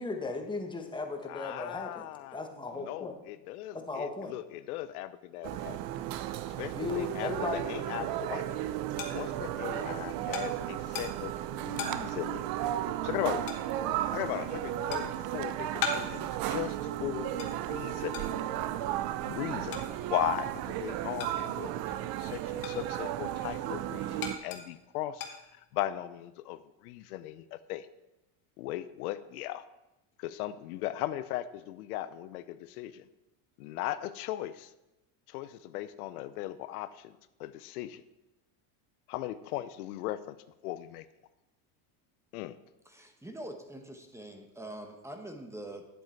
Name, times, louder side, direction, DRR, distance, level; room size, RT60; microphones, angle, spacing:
voice 1, 0.0-2.1 2.3-3.1 3.7-4.3 6.7-7.6, left 3 dB, 10° left, 3 dB, 1.5 m, -36 dB
voice 2, 1.3-2.4 2.8-5.8 6.6-8.4 9.1-12.5 13.0-13.4 14.1-18.3 19.3-21.7 22.2-24.1 24.4-25.2 25.7-26.6 26.8-27.9 28.6-29.6 30.2-33.0 33.6-34.7 35.3-36.9 37.4-38.0 39.1-40.3 40.6-41.0 42.3-42.6, left 14 dB, 85° left, 14 dB, 0.7 m, -37 dB
sound 1, 5.4-24.4, right 12 dB, 55° right, 0.7 m, -34 dB
sound 2, 8.9-21.8 22.1-26.0, left 6 dB, 50° left, 2.0 m, -42 dB
voice 3, 42.8-45.9, right 1 dB, 5° right, 5 dB, 1.2 m, -44 dB
10.0 x 7.7 x 4.6 m, 0.98 s
supercardioid pair, 115°, 44 cm